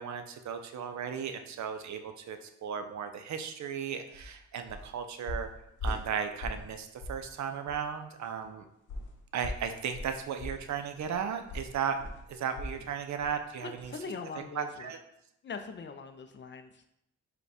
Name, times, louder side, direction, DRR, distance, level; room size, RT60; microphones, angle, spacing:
voice 1, 0.0-5.5 5.8-8.6 9.3-12.0 12.3-13.9 14.6-15.0, right 7 dB, 70° right, 7 dB, 0.5 m, -35 dB
sound 1, 4.1-4.3 4.7-4.9 5.3-6.7 7.0-7.3 7.7-7.8 8.9-12.9 13.2-13.4 13.8-13.9, left 1 dB, 80° left, 1.0 m, -39 dB
voice 2, 13.6-14.9 15.4-16.9, left 5 dB, 40° left, 8 dB, 0.4 m, -42 dB
4.9 x 2.2 x 4.8 m, 0.78 s
wide cardioid pair, 130°, 30 cm